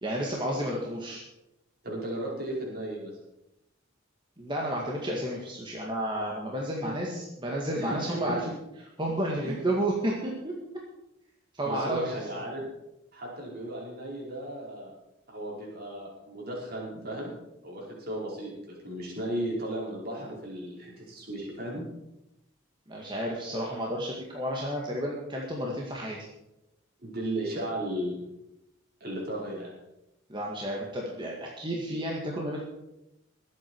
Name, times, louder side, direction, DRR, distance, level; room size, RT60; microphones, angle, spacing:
voice 1, 0.0-1.2 4.4-8.5 8.8-10.6 11.5-12.2 22.9-26.3 30.3-32.6, right 1 dB, 25° right, -2 dB, 1.9 m, -31 dB
voice 2, 1.8-3.1 6.8-6.9 7.7-8.4 9.4-9.6 11.6-12.7 13.1-14.9 15.3-17.3 17.6-21.8 27.0-28.2 29.0-29.7, right 1 dB, 50° right, -3 dB, 4.9 m, -35 dB
21.0 x 8.6 x 4.7 m, 0.90 s
head